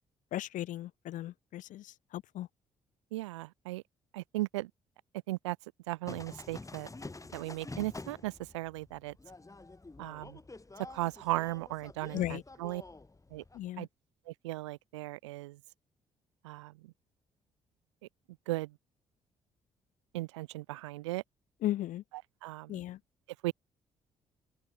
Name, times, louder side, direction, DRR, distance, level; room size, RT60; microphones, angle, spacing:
voice 1, 0.3-2.5 12.1-12.4 13.5-13.9 21.6-22.0 22.7-23.0, left 14 dB, 60° left, 0.8 m, -36 dB
voice 2, 3.1-3.8 4.1-4.7 5.3-5.6 5.9-6.9 7.3-9.2 10.0-10.4 10.9-12.8 13.3-13.4 13.8-13.9 14.3-15.6 16.4-16.9 18.5-18.7 20.1-21.2 22.1-22.8 23.4-23.5, right 19 dB, 80° right, 1.2 m, -37 dB
sound 1, 6.1-13.7, left 2 dB, 20° left, 7.7 m, -48 dB
figure-of-eight pair, 45°, 15 cm